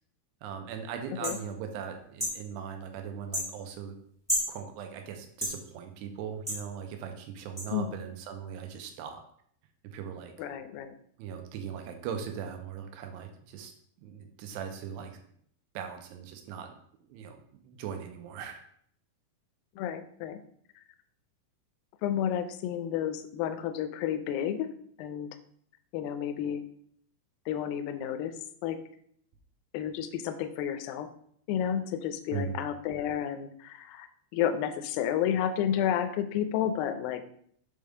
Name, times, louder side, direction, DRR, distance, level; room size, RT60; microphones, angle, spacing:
voice 1, 0.4-4.0 4.5-9.2 9.8-10.3 11.2-13.7 14.0-15.2 15.7-16.7 17.1-18.6 32.3-32.6, right 7 dB, 90° right, 5 dB, 2.9 m, -39 dB
sound 1, 1.2-1.4 2.2-2.4 3.3-3.5 4.3-4.5 5.4-5.6 6.5-6.6 7.6-7.7, equal, 5° right, 0.9 m, -30 dB
voice 2, 10.4-10.9 19.8-20.4 22.0-24.7 25.0-25.4 25.9-26.7 27.5-28.8 29.7-31.1 31.5-34.1 34.3-37.2, left 9 dB, 80° left, 9 dB, 2.2 m, -31 dB
7.6 x 3.5 x 5.0 m, 0.64 s
omnidirectional pair, 4.8 m